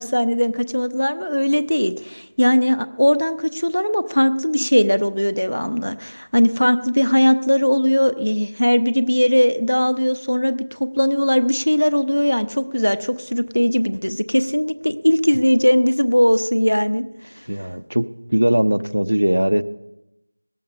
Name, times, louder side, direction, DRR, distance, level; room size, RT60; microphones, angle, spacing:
voice 1, 0.0-17.0 17.4-17.5, equal, 85° left, 11 dB, 0.9 m, -19 dB
voice 2, 17.5-19.6, right 1 dB, 65° right, 16 dB, 0.7 m, -20 dB
17.5 x 12.5 x 5.4 m, 0.91 s
figure-of-eight pair, 175°, 0 cm